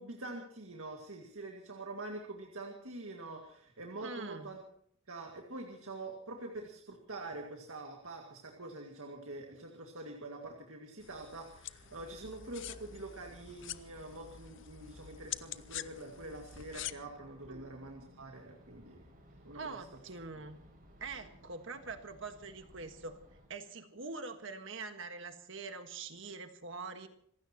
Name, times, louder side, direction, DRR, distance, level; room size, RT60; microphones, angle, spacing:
voice 1, 0.0-4.6 5.1-19.0 19.4-19.8, right 2 dB, 80° right, 2 dB, 2.1 m, -45 dB
voice 2, 4.0-4.5 17.5-17.6 19.5-20.6 21.0-23.2 23.5-27.1, right 4 dB, 60° right, 7 dB, 1.5 m, -44 dB
sound 1, 11.0-16.9, left 13 dB, 60° left, 0.6 m, -46 dB
sound 2, 11.8-23.5, equal, 40° right, 6.3 m, -58 dB
27.0 x 16.0 x 3.0 m, 0.63 s
head